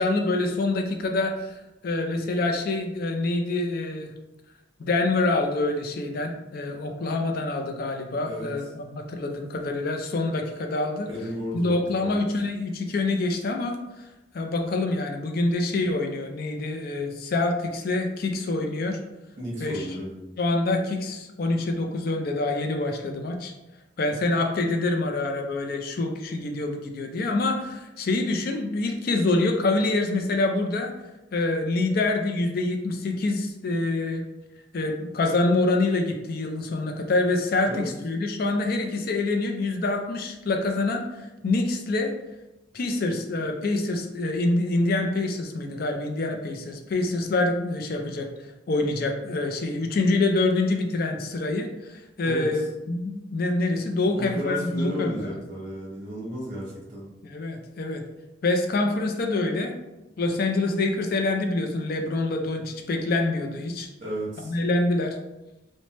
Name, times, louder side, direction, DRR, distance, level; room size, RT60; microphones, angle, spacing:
voice 1, 0.0-1.6 1.8-4.1 4.8-11.1 11.5-14.1 14.3-19.0 19.6-19.9 20.4-23.5 24.0-30.9 31.3-34.2 34.7-42.1 42.7-48.3 48.7-55.3 57.2-58.0 58.4-59.7 60.2-63.9 64.4-65.2, left 2 dB, 55° left, 4 dB, 0.4 m, -26 dB
voice 2, 11.1-12.4 19.4-20.2 37.6-37.9 52.2-52.5 54.1-57.1 64.0-64.5, equal, 45° right, -5 dB, 0.9 m, -33 dB
3.1 x 2.1 x 2.9 m, 1.0 s
head